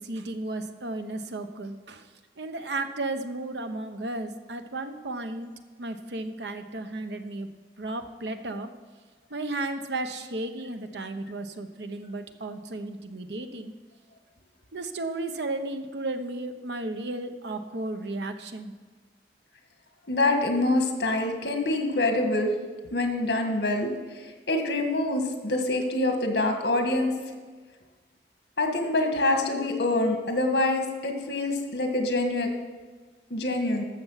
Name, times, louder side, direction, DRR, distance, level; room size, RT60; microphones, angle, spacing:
voice 1, 0.0-2.1 2.4-5.5 5.8-7.5 7.8-8.7 9.3-13.7 14.7-18.7, right 2 dB, 85° right, 8 dB, 0.9 m, -34 dB
voice 2, 20.1-22.5 22.9-27.1 28.6-32.5 33.3-33.8, left 2 dB, 70° left, 4 dB, 1.7 m, -25 dB
13.0 x 6.9 x 5.7 m, 1.4 s
head